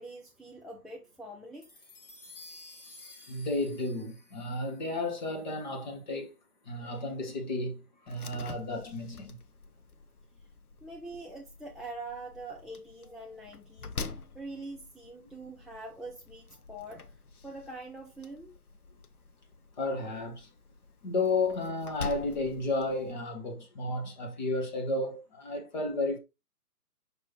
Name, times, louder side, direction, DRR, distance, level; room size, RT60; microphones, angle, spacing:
voice 1, 0.0-1.7 10.8-14.0 14.3-17.0 17.4-18.5, right 2 dB, ahead, 0.3 m, -44 dB
sound 1, 1.6-6.1, left 2 dB, 50° left, 2.8 m, -53 dB
voice 2, 3.3-6.3 6.6-7.8 8.0-9.4 19.8-20.5 21.0-26.2, left 2 dB, 30° left, 1.2 m, -32 dB
Slam, 8.1-23.1, left 4 dB, 70° left, 0.8 m, -46 dB
6.1 x 5.4 x 2.9 m
figure-of-eight pair, 140°, 46 cm